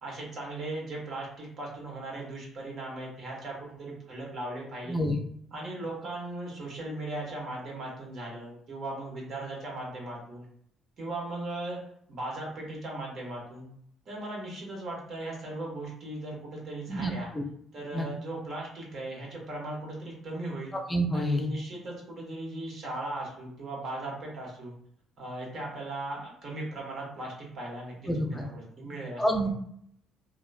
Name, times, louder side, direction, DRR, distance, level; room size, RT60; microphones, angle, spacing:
voice 1, 0.0-5.0 5.5-10.5 11.0-11.8 12.1-13.7 14.1-17.3 17.7-20.7 21.1-24.7 25.2-29.5, right 2 dB, 55° right, -2 dB, 1.3 m, -38 dB
voice 2, 20.7-21.5 28.1-28.4 29.2-29.5, equal, 15° left, 4 dB, 0.6 m, -28 dB
2.9 x 2.3 x 2.3 m, 0.68 s
supercardioid pair, 70°, 0 cm